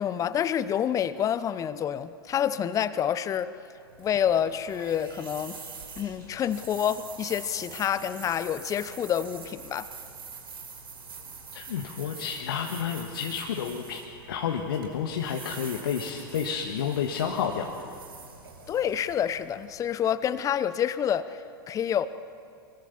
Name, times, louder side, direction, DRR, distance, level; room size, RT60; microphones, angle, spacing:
voice 1, 0.0-3.5 4.0-5.6 6.0-9.9 18.7-21.3 21.7-22.1, left 9 dB, 25° left, 14 dB, 0.9 m, -28 dB
sound 1, 3.8-20.0, right 5 dB, 75° right, 4.3 m, -45 dB
voice 2, 11.5-14.0 14.3-17.8, left 7 dB, 65° left, 1 dB, 1.8 m, -30 dB
25.0 x 23.0 x 7.2 m, 2.5 s
figure-of-eight pair, 95°, 12 cm